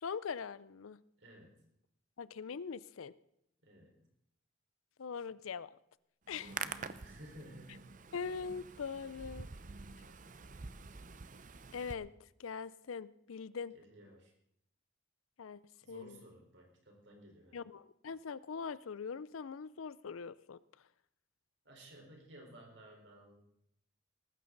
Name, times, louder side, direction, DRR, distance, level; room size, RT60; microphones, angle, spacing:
voice 1, 0.0-1.0 2.2-3.1 5.0-5.7 6.3-6.5 8.1-9.5 11.7-12.1 12.4-13.7 15.4-15.6 15.9-16.2 17.5-20.6, left 5 dB, 90° left, 19 dB, 0.5 m, -42 dB
voice 2, 1.2-1.5 3.6-4.0 6.4-8.0 13.7-14.3 15.8-17.6 21.6-23.4, right 1 dB, 60° right, 1 dB, 4.5 m, -55 dB
Hands, 6.3-11.9, right 5 dB, 40° right, 0.6 m, -47 dB
19.0 x 15.0 x 4.0 m, 0.76 s
head